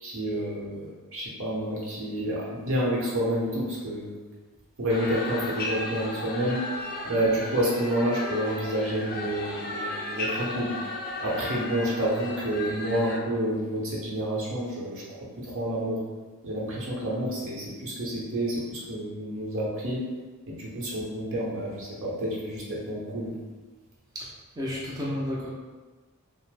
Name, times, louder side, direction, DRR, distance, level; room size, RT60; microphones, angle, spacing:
voice 1, 0.0-4.2 4.8-6.6 7.0-10.7 11.2-15.0 15.4-16.0 16.4-20.0 20.5-23.3, right 1 dB, 65° right, -5 dB, 0.9 m, -29 dB
sound 1, 4.9-13.2, left 2 dB, 40° left, 0.4 m, -35 dB
voice 2, 24.6-25.5, left 1 dB, 15° right, -6 dB, 0.5 m, -31 dB
3.0 x 2.0 x 3.2 m, 1.3 s
head